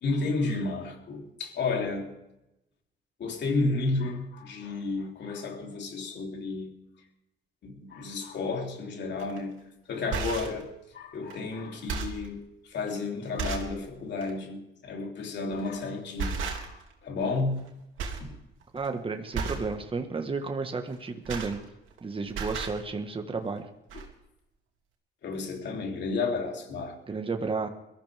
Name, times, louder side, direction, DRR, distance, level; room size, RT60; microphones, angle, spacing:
voice 1, 0.0-2.1 3.2-6.7 7.6-9.6 9.9-12.4 12.7-17.6 18.2-18.3 25.2-27.0, left 3 dB, 60° left, 3.3 m, -32 dB
sound 1, 9.2-9.4 9.9-10.6 11.3-11.4 11.7-12.3 12.9-13.0 13.4-13.8 14.2-14.3 15.5-15.8 16.2-16.9 17.2-17.7 18.0-18.3 18.6-18.9 19.3-19.7 20.9-22.0 22.3-22.8 23.6-23.7 23.9-24.1, right 5 dB, 80° right, 2.7 m, -34 dB
voice 2, 18.7-21.6 22.0-23.7 27.1-27.7, right 4 dB, 25° right, 1.5 m, -32 dB
22.0 x 14.0 x 3.5 m
cardioid pair, 90°, 20 cm